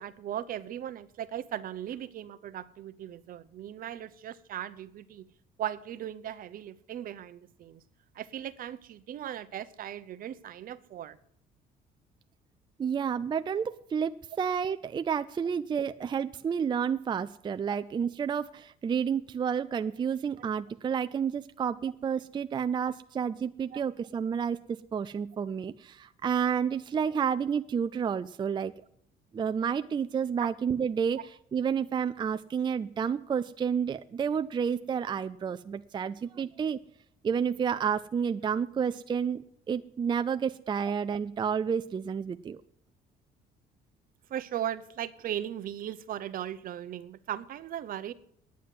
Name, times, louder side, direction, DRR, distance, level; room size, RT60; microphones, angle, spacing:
voice 1, 0.0-5.3 5.6-7.8 8.1-11.2 17.7-17.8 23.7-23.8 30.4-30.5 44.3-48.1, right 11 dB, 60° right, 14 dB, 0.7 m, -38 dB
voice 2, 12.8-28.7 29.3-31.2 31.5-36.8 37.2-42.6, right 7 dB, 25° right, 11 dB, 0.4 m, -30 dB
9.4 x 9.4 x 7.6 m, 0.68 s
cardioid pair, 110°, 17 cm